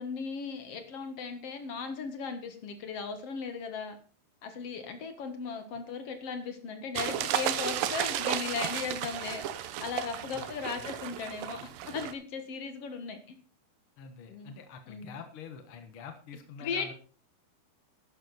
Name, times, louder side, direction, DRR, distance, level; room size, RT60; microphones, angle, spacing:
voice 1, 0.0-4.0 4.4-11.6 11.8-13.4 14.3-14.6 14.9-15.2 16.6-16.9, left 5 dB, 55° left, 7 dB, 1.8 m, -37 dB
sound 1, 7.0-12.1, right 11 dB, 70° right, 2.2 m, -33 dB
voice 2, 10.7-11.2 14.0-16.9, left 6 dB, 75° left, 7 dB, 1.2 m, -46 dB
12.0 x 11.0 x 4.1 m, 0.38 s
omnidirectional pair, 4.6 m